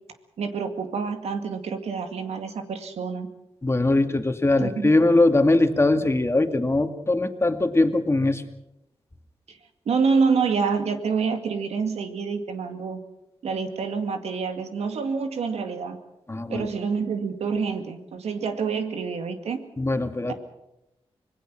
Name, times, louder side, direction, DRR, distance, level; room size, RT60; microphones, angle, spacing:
voice 1, 0.4-3.3 4.6-5.0 9.5-9.6 9.9-13.0 13.4-16.0 16.5-19.6 20.3-20.4, right 5 dB, 85° right, 7 dB, 2.2 m, -27 dB
voice 2, 3.6-8.4 16.3-16.7 19.8-20.3, left 2 dB, 25° left, 6 dB, 2.4 m, -21 dB
25.5 x 19.5 x 6.2 m, 0.89 s
cardioid pair, 55°, 11 cm